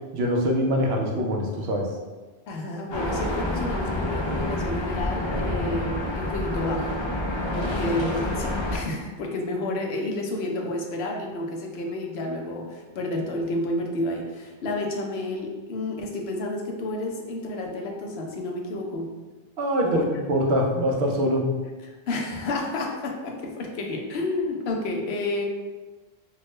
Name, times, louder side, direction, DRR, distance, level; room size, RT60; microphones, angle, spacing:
voice 1, 0.1-1.9 19.6-21.4, equal, 80° right, 0 dB, 0.9 m, -24 dB
voice 2, 2.5-6.9 7.5-19.1 19.8-20.1 21.8-25.5, left 2 dB, 85° left, 1 dB, 0.9 m, -30 dB
sound 1, 2.9-8.8, left 1 dB, 40° left, 0.4 m, -28 dB
3.5 x 2.2 x 3.1 m, 1.3 s
omnidirectional pair, 1.0 m